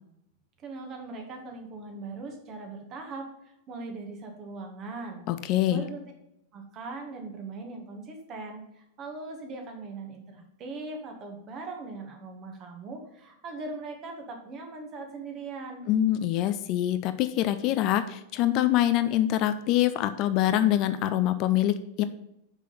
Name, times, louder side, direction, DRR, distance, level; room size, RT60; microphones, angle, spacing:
voice 1, 0.6-5.2 5.7-6.0 6.5-15.9, right 3 dB, 35° right, 3 dB, 1.9 m, -40 dB
voice 2, 5.3-5.8 15.9-22.0, left 12 dB, 40° left, 11 dB, 0.5 m, -25 dB
6.0 x 5.8 x 7.1 m, 0.82 s
figure-of-eight pair, 90°, 0 cm